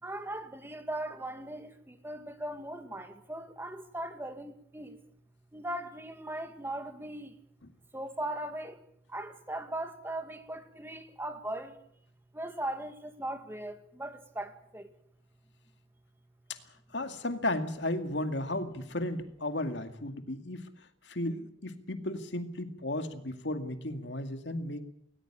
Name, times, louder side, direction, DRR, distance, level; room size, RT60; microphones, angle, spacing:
voice 1, 0.0-5.0 5.5-7.4 7.9-8.8 9.1-11.8 12.3-14.9, right 1 dB, 10° right, 1.8 m, -39 dB
voice 2, 16.9-20.7 21.1-24.8, left 1 dB, 75° left, 2.1 m, -34 dB
20.0 x 19.0 x 8.9 m
head